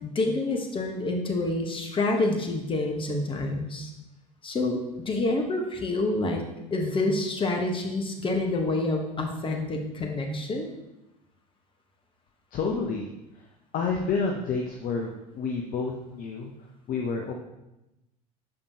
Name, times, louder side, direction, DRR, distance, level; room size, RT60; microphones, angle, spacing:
voice 1, 0.0-3.9 4.4-4.8 5.0-6.4 6.7-10.7, left 2 dB, 25° left, 3 dB, 1.1 m, -27 dB
voice 2, 12.5-13.1 13.7-16.5 16.9-17.3, left 4 dB, 45° left, 1 dB, 0.7 m, -29 dB
6.6 x 5.1 x 2.8 m, 0.93 s
hypercardioid pair, 70°, 20 cm